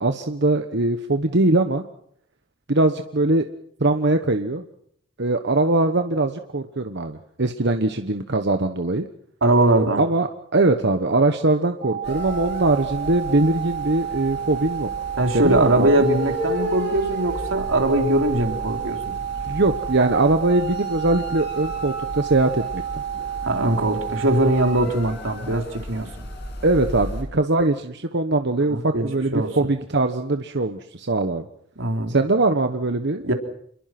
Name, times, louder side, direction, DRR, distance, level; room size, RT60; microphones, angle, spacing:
voice 1, 0.0-1.8 2.7-3.4 3.8-4.6 5.2-9.0 10.0-14.9 15.3-15.9 19.5-23.0 26.6-31.5 32.1-33.3, right 2 dB, 60° right, 7 dB, 1.2 m, -21 dB
voice 2, 9.4-10.0 15.2-19.1 23.4-26.1 28.7-29.7 31.8-32.1 33.2-33.3, right 1 dB, 80° right, 3 dB, 4.0 m, -21 dB
sound 1, 11.8-24.8, right 10 dB, 45° right, 0.8 m, -31 dB
sound 2, 12.0-27.2, left 1 dB, 60° left, 7.4 m, -35 dB
27.5 x 22.0 x 6.1 m, 0.68 s
head